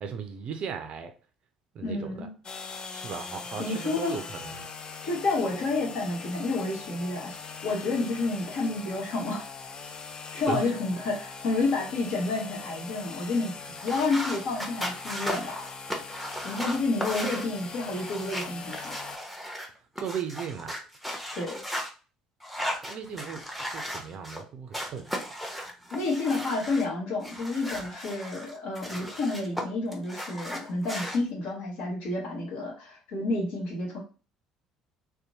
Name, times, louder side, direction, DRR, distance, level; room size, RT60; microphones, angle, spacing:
voice 1, 0.0-1.1 1.7-2.3 2.9-4.7 10.5-10.8 13.6-13.8 16.4-16.5 20.0-20.8 22.8-25.3, right 7 dB, 45° right, 0.4 m, -37 dB
voice 2, 1.8-2.3 3.6-4.1 5.0-7.4 7.6-9.4 10.3-13.5 13.8-15.6 16.4-18.9 21.4-21.6 25.9-34.0, left 3 dB, 60° left, 1.0 m, -30 dB
sound 1, 2.4-19.2, left 4 dB, 35° left, 0.4 m, -41 dB
sound 2, 13.7-21.9 22.4-24.4 24.7-26.8 27.2-29.6 29.9-31.2, equal, ahead, 0.7 m, -36 dB
2.7 x 2.1 x 2.7 m
figure-of-eight pair, 55°, 3 cm